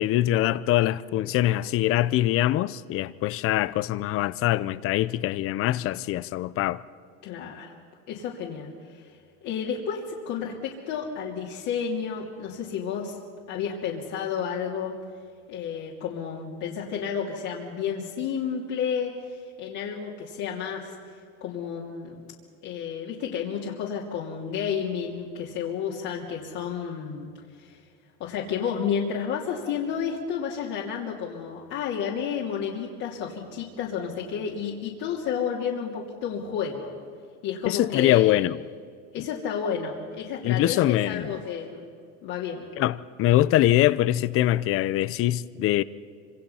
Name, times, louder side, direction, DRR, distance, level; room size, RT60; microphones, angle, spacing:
voice 1, 0.0-6.8 37.6-38.6 40.4-41.3 42.8-45.8, left 14 dB, 40° left, 0.7 m, -23 dB
voice 2, 7.2-7.7 8.1-9.1 9.4-13.2 13.5-14.9 15.5-20.9 21.4-22.3 22.6-27.3 27.6-27.8 28.2-36.9 37.4-38.4 39.1-41.8 42.2-42.7, left 7 dB, 60° left, 3.0 m, -31 dB
26.0 x 26.0 x 5.7 m
supercardioid pair, 135°, 33 cm